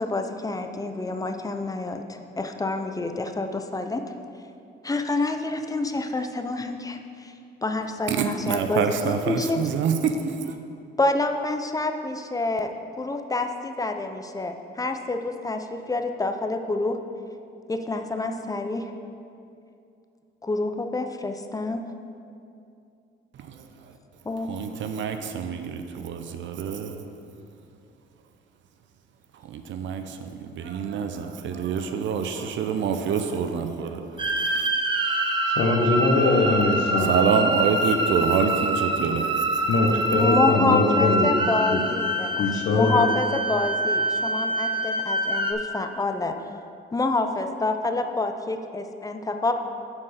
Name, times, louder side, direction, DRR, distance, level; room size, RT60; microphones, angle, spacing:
voice 1, 0.0-4.0 4.8-7.3 7.6-9.6 11.0-17.0 17.7-18.9 20.4-21.8 24.2-24.5 40.2-46.3 46.9-49.5, left 2 dB, 20° left, 6 dB, 0.5 m, -27 dB
voice 2, 8.1-10.5 23.3-24.0 24.4-27.0 29.3-34.7 37.0-40.0 40.3-40.4, right 6 dB, 70° right, 7 dB, 0.6 m, -27 dB
sound 1, 34.2-45.5, right 1 dB, 25° right, 0.8 m, -25 dB
voice 3, 35.5-37.1 39.7-41.8 42.3-43.1, left 3 dB, 70° left, 2 dB, 0.9 m, -22 dB
7.1 x 4.5 x 6.5 m, 2.5 s
cardioid pair, 90°, 20 cm